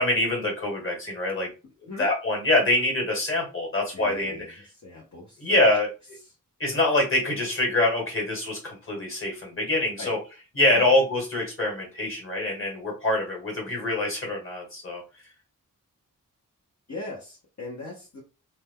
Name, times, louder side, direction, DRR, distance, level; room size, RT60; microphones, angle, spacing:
voice 1, 0.0-1.5 1.8-4.6 5.4-5.9 6.6-10.2 10.5-15.0, left 1 dB, 40° left, 0 dB, 1.7 m, -25 dB
voice 2, 3.9-4.5 4.8-5.6 10.0-10.1 10.7-10.9 16.9-18.2, left 2 dB, 55° left, -5 dB, 1.0 m, -39 dB
2.8 x 2.2 x 3.5 m, 0.30 s
wide cardioid pair, 65°, 34 cm